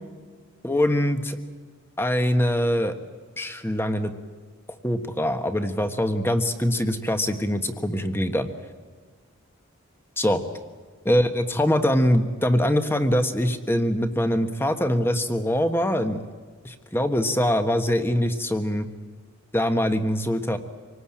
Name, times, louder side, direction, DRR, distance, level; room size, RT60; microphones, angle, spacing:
voice 1, 0.6-1.4 2.0-2.9 3.4-4.1 4.8-8.5 10.2-10.4 11.0-16.2 16.6-18.9 19.5-20.6, equal, 10° left, 7 dB, 1.3 m, -23 dB
26.5 x 19.0 x 8.7 m, 1.6 s
head